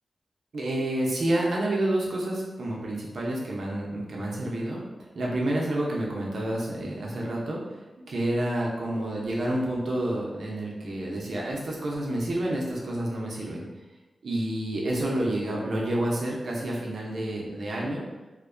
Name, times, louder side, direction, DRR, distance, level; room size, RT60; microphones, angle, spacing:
voice 1, 0.5-4.8 5.1-7.6 8.0-13.6 14.2-18.0, right 1 dB, 70° right, -3 dB, 0.6 m, -29 dB
2.5 x 2.2 x 2.4 m, 1.1 s
cardioid pair, 60°, 0 cm